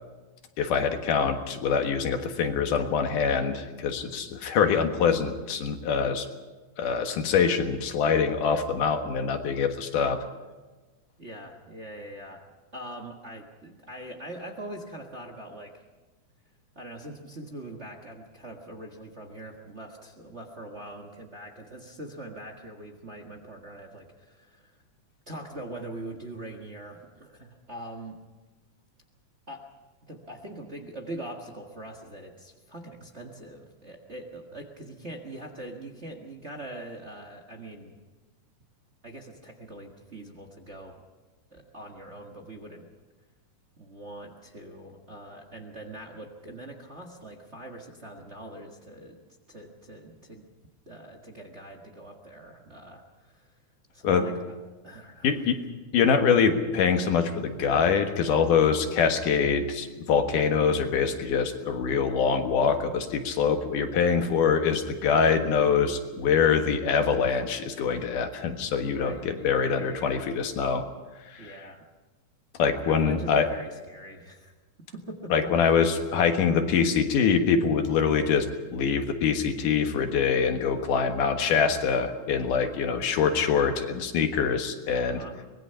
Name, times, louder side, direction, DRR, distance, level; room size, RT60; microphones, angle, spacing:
voice 1, 0.6-6.3 6.8-10.2 54.0-54.3 55.2-55.6 55.9-70.9 71.3-71.5 72.6-73.5 75.3-85.2, left 6 dB, 90° left, 6 dB, 3.1 m, -24 dB
voice 2, 11.2-12.5 12.7-15.7 16.7-24.8 25.3-28.2 29.5-29.6 30.0-38.0 39.0-41.0 41.5-42.8 43.8-49.2 49.5-50.4 50.8-53.5 53.9-54.3 54.8-55.4 63.9-64.3 68.8-70.3 71.4-71.8 72.9-74.5 74.9-75.7 85.0-85.4, right 1 dB, 30° right, 4 dB, 1.3 m, -42 dB
24.5 x 20.0 x 5.7 m, 1.3 s
omnidirectional pair, 3.5 m